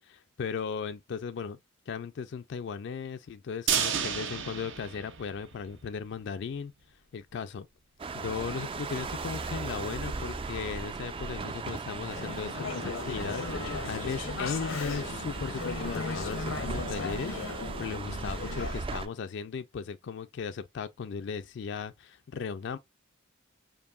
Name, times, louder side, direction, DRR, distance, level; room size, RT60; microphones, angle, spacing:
voice 1, 0.1-1.6 1.9-6.7 7.1-7.7 8.1-22.8, left 6 dB, 60° left, 0.4 m, -37 dB
sound 1, 3.7-5.8 6.1-6.2 6.6-6.7, right 8 dB, 65° right, 0.8 m, -31 dB
sound 2, 8.0-19.1, right 4 dB, 25° right, 0.4 m, -37 dB
Conversation / Chatter, 12.1-18.8, left 4 dB, 85° left, 0.7 m, -37 dB
4.6 x 3.0 x 2.4 m
head